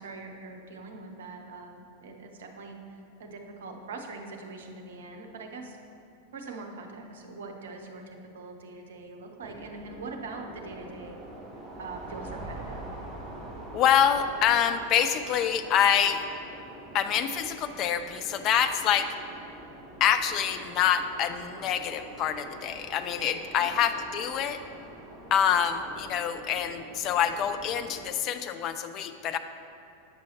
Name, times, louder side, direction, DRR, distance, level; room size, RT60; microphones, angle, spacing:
voice 1, 0.0-5.8 6.3-11.2 11.8-12.9 23.6-23.9, right 3 dB, 60° right, 4 dB, 0.6 m, -42 dB
sound 1, 9.4-28.1, right 1 dB, 15° right, 1.6 m, -45 dB
voice 2, 13.7-16.2 16.9-19.1 20.0-24.6 25.3-29.4, left 9 dB, 35° left, 9 dB, 0.4 m, -26 dB
8.3 x 6.1 x 2.9 m, 2.8 s
figure-of-eight pair, 90°, 0 cm